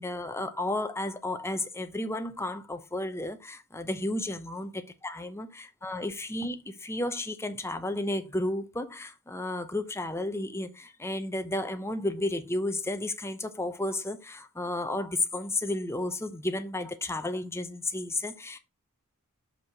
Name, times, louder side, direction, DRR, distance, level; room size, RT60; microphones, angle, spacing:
voice 1, 0.0-18.6, left 1 dB, 10° left, 0.8 m, -32 dB
5.7 x 5.2 x 4.6 m
head